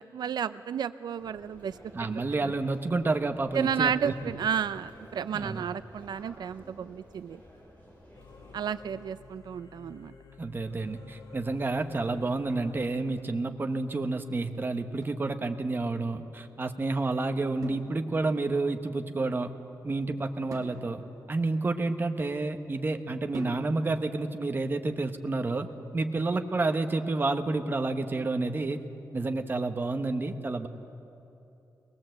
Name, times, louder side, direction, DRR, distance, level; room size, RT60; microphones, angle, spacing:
voice 1, 0.0-2.5 3.5-7.4 8.5-10.1, right 8 dB, 90° right, 13 dB, 0.4 m, -32 dB
sound 1, 1.2-8.9, equal, 20° left, 5.5 m, -53 dB
voice 2, 1.9-4.1 5.3-5.6 10.4-19.5 19.8-21.0 21.3-25.7 25.9-28.8 29.1-30.7, right 3 dB, 30° right, 7 dB, 1.0 m, -29 dB
Singing / Musical instrument, 8.1-13.3, left 4 dB, 75° left, 2.5 m, -51 dB
sound 2, 15.0-16.0 17.6-18.5 20.5-22.5 23.3-24.1, right 3 dB, 55° right, 2.3 m, -46 dB
22.5 x 19.5 x 7.8 m, 2.9 s
wide cardioid pair, 155°, 7 cm